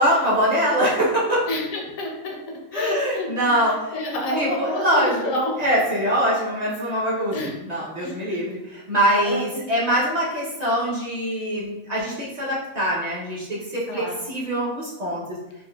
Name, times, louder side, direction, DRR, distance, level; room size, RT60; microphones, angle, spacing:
voice 1, 0.0-1.4 2.7-3.7 4.4-5.2 5.6-14.0 14.3-15.2, equal, 45° right, -6 dB, 0.6 m, -23 dB
voice 2, 1.5-5.6 7.3-7.5 8.0-8.4 9.2-9.7 13.9-14.3, left 1 dB, 75° left, 1 dB, 1.0 m, -29 dB
4.2 x 2.2 x 2.2 m, 0.99 s
omnidirectional pair, 1.5 m